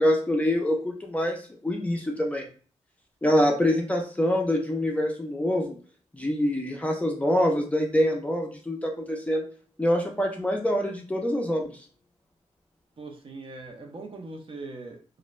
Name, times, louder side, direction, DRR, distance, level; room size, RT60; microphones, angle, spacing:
voice 1, 0.0-2.5 3.2-5.8 6.1-9.4 9.8-11.8, left 1 dB, 10° left, 0 dB, 0.4 m, -25 dB
voice 2, 13.0-15.0, right 3 dB, 45° right, 2 dB, 0.5 m, -40 dB
2.4 x 2.2 x 3.0 m, 0.41 s
wide cardioid pair, 145°, 13 cm